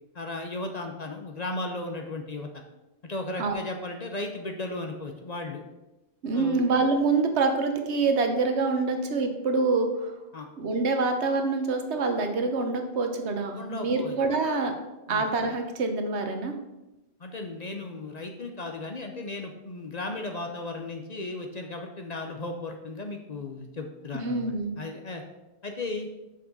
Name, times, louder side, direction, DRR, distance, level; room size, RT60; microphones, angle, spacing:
voice 1, 0.1-2.5 3.0-5.6 6.3-6.6 10.3-10.5 13.5-14.2 15.1-15.2 17.2-25.2 25.6-26.1, left 2 dB, 45° left, 4 dB, 0.7 m, -35 dB
voice 2, 6.2-10.1 10.6-14.7 15.1-16.6 24.1-24.8, right 3 dB, 75° right, 5 dB, 1.2 m, -26 dB
6.3 x 5.2 x 5.3 m, 1.0 s
omnidirectional pair, 1.1 m